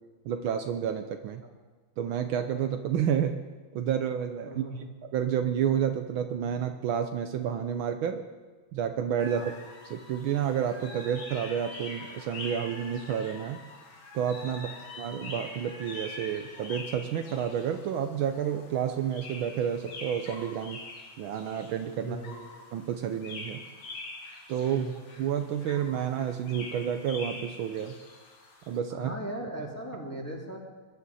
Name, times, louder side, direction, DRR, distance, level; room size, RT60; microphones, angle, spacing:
voice 1, 0.2-1.4 2.0-3.4 3.7-4.6 5.1-8.3 8.7-9.5 9.8-13.6 14.1-14.7 15.0-20.8 21.2-22.2 22.7-23.6 24.5-24.9 25.2-27.9 28.7-29.1, right 8 dB, 75° right, 7 dB, 1.5 m, -30 dB
voice 2, 4.4-4.8 9.3-9.5 14.5-14.7 22.0-22.4 24.7-24.9 28.9-30.6, right 1 dB, 5° left, -3 dB, 2.4 m, -38 dB
sound 1, 9.2-28.8, left 2 dB, 90° left, 2.8 m, -44 dB
22.0 x 10.5 x 4.1 m, 1.3 s
omnidirectional pair, 2.4 m